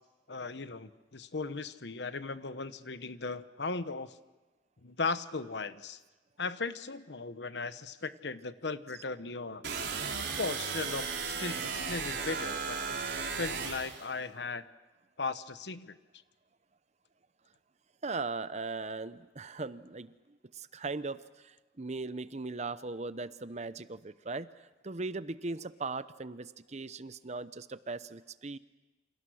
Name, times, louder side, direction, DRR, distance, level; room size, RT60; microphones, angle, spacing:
voice 1, 0.3-4.1 4.8-6.0 6.4-9.6 10.4-13.0 13.3-14.6 15.2-16.0, left 4 dB, 70° left, 12 dB, 1.1 m, -37 dB
sound 1, 9.6-14.0, right 5 dB, 75° right, 3.8 m, -35 dB
voice 2, 18.0-20.1 20.6-21.2 21.8-24.5 24.8-28.6, right 3 dB, 40° right, 14 dB, 0.8 m, -38 dB
28.5 x 27.0 x 6.4 m, 1.1 s
head